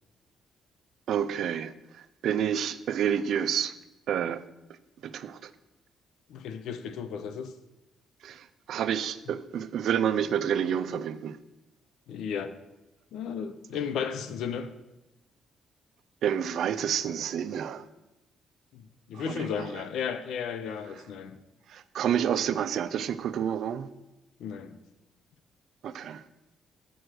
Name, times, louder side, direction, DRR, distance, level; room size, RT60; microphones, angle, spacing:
voice 1, 1.1-3.7 4.1-4.4 5.0-5.5 8.2-11.4 16.2-17.8 19.1-19.8 21.7-23.9 25.8-26.2, right 9 dB, 70° right, 0.5 m, -29 dB
voice 2, 6.3-7.5 12.1-12.6 13.1-14.7 18.7-21.4 24.4-24.7, left 7 dB, 80° left, 0.7 m, -34 dB
7.8 x 6.3 x 6.4 m
cardioid pair, 90°, 0 cm